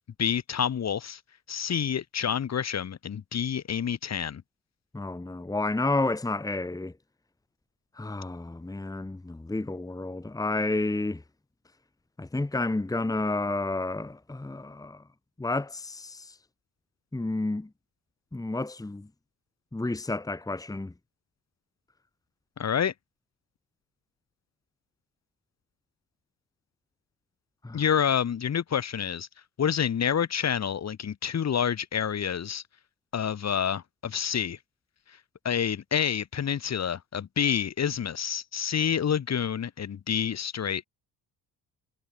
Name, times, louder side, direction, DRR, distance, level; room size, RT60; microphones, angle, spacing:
voice 1, 0.2-1.2 1.5-4.4 22.6-22.9 27.7-29.3 29.6-32.6 33.1-34.6 35.4-40.8, left 8 dB, 40° left, 3.0 m, -28 dB
voice 2, 4.9-6.9 8.0-11.2 12.2-15.0 15.4-16.4 17.1-17.7 18.3-19.1 19.7-20.9 27.6-27.8, left 2 dB, 10° left, 2.0 m, -30 dB
cardioid pair, 120°, 41 cm